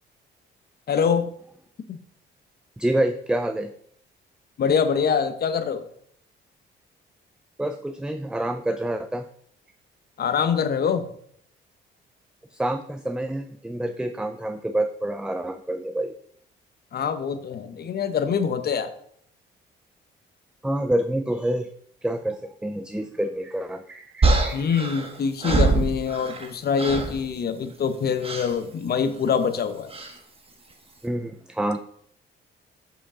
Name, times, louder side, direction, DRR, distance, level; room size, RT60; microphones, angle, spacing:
voice 1, 0.9-1.3 1.9-2.0 4.6-5.8 10.2-11.1 16.9-18.9 24.5-29.9, left 6 dB, 50° left, 9 dB, 0.9 m, -24 dB
voice 2, 2.8-3.7 7.6-9.3 12.5-16.1 20.6-21.7 22.0-24.8 31.0-31.8, right 1 dB, 5° right, 9 dB, 0.4 m, -27 dB
sound 1, 24.2-26.5 26.8-27.2 28.2-28.5 29.9-30.2, right 3 dB, 30° right, 1.3 m, -23 dB
7.2 x 5.2 x 3.7 m, 0.65 s
cardioid pair, 90°, 20 cm